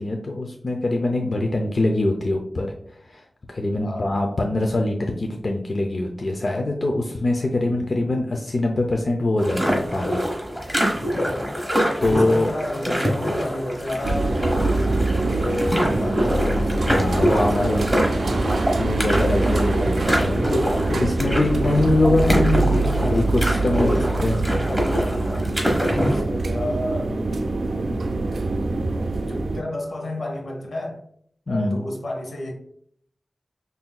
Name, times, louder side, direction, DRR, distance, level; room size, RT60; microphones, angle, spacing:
voice 1, 0.0-2.7 3.1-10.2 12.0-12.5 16.8-17.8 18.7-23.9 24.2-24.4 31.5-31.8, left 2 dB, 50° left, 2 dB, 0.5 m, -23 dB
voice 2, 1.1-1.5 3.8-4.1 7.6-8.0 12.1-18.3 23.7-25.6 26.1-27.3 29.2-31.0 31.5-32.5, left 1 dB, 80° left, 1 dB, 0.9 m, -32 dB
sound 1, 9.4-26.2, equal, ahead, 1.1 m, -25 dB
sound 2, 14.0-29.6, right 2 dB, 85° right, 0.4 m, -24 dB
5.7 x 2.6 x 2.2 m, 0.66 s
wide cardioid pair, 75°, 0 cm